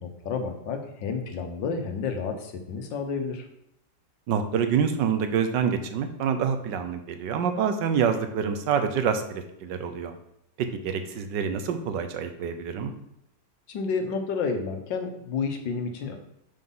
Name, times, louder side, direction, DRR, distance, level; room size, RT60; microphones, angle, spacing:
voice 1, 0.0-3.4 13.7-16.2, left 5 dB, 80° left, 6 dB, 1.7 m, -30 dB
voice 2, 4.3-10.1 10.6-12.9, right 7 dB, 75° right, 8 dB, 1.4 m, -27 dB
5.8 x 5.1 x 5.5 m, 0.81 s
omnidirectional pair, 2.0 m